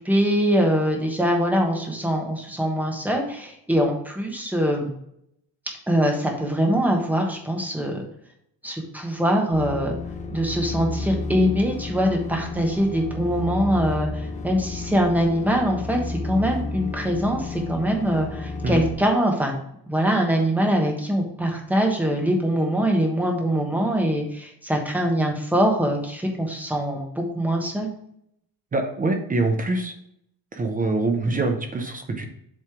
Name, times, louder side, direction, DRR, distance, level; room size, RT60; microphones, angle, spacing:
voice 1, 0.0-4.9 5.9-8.0 8.6-9.9 10.3-19.5 19.9-27.9, equal, 5° right, 1 dB, 1.1 m, -23 dB
sound 1, 9.5-18.9, left 3 dB, 20° left, 0.5 m, -32 dB
voice 2, 28.7-29.9 30.5-32.3, right 2 dB, 20° right, 4 dB, 0.6 m, -24 dB
7.5 x 3.3 x 4.9 m, 0.73 s
cardioid pair, 165°, 40 cm